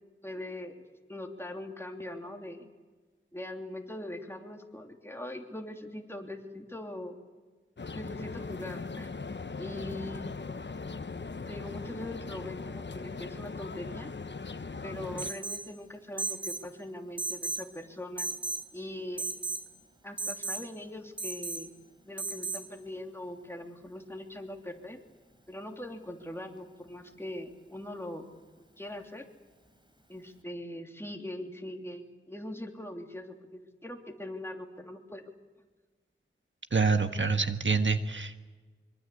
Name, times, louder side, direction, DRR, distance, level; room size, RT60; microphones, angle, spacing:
voice 1, 0.2-0.7 1.1-2.7 3.3-7.1 7.9-9.1 9.6-10.5 11.5-14.1 14.8-18.3 18.7-19.2 20.0-21.7 22.1-25.0 25.5-28.3 28.8-29.2 30.1-35.2, left 1 dB, 10° left, 3 dB, 3.1 m, -41 dB
sound 1, 7.8-15.3, left 4 dB, 60° left, 1.0 m, -39 dB
Alarm, 15.2-15.7 16.2-16.6 17.2-17.7 18.2-18.6 19.2-19.6 20.2-20.6 21.2-21.6 22.2-22.6, right 3 dB, 20° right, 3.8 m, -34 dB
voice 2, 36.7-38.4, right 4 dB, 65° right, 7 dB, 1.5 m, -26 dB
25.0 x 24.0 x 8.4 m, 1.3 s
wide cardioid pair, 65°, 21 cm